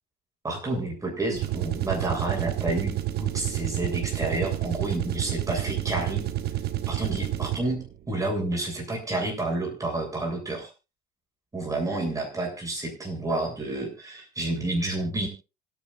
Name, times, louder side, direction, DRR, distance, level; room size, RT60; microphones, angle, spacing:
voice 1, 0.4-6.3 6.9-10.7 11.5-15.3, right 2 dB, 20° right, 0 dB, 7.6 m, -30 dB
sound 1, 1.3-7.9, right 13 dB, 70° right, 1.5 m, -29 dB
26.0 x 10.0 x 2.6 m, 0.30 s
cardioid pair, 110°, 17 cm